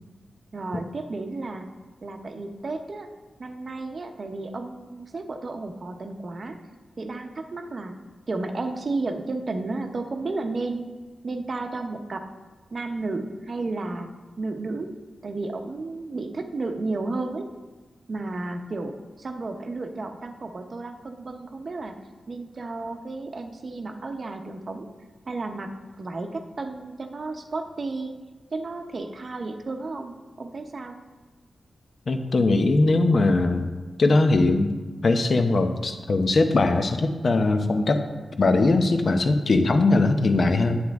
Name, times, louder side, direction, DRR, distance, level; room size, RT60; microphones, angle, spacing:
voice 1, 0.5-1.7 2.0-3.1 3.4-6.6 7.0-7.9 8.3-10.9 11.2-12.3 12.7-14.1 14.4-14.9 15.2-17.5 18.1-22.0 22.3-24.9 25.3-28.1 28.5-30.9, right 3 dB, 45° right, 5 dB, 0.8 m, -32 dB
voice 2, 32.1-33.7 34.0-34.7 35.0-38.0 38.4-40.8, left 2 dB, 50° left, 6 dB, 0.7 m, -20 dB
9.8 x 7.8 x 3.5 m, 1.3 s
wide cardioid pair, 120°, 0 cm